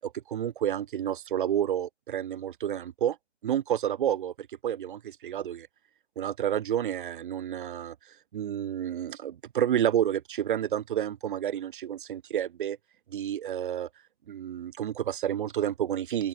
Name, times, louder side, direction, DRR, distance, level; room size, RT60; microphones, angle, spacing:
voice 1, 0.0-3.2 3.4-5.7 6.2-12.8 13.1-13.9 14.3-16.3, right 10 dB, 45° right, 7.4 m, -30 dB
open air
figure-of-eight pair, 130°, 35 cm